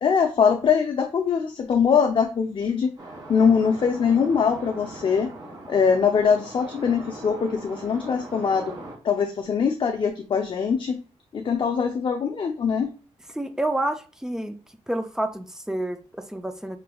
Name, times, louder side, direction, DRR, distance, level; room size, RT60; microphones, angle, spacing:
voice 1, 0.0-2.9 3.3-5.3 5.7-8.7 9.0-11.0 11.3-12.9, left 6 dB, 45° left, 3 dB, 0.5 m, -22 dB
sound 1, 3.0-9.0, right 2 dB, 30° right, 1.8 m, -40 dB
voice 2, 13.3-14.6 14.9-16.8, right 1 dB, 5° right, 7 dB, 0.4 m, -29 dB
5.7 x 3.3 x 2.3 m, 0.37 s
wide cardioid pair, 150°, 12 cm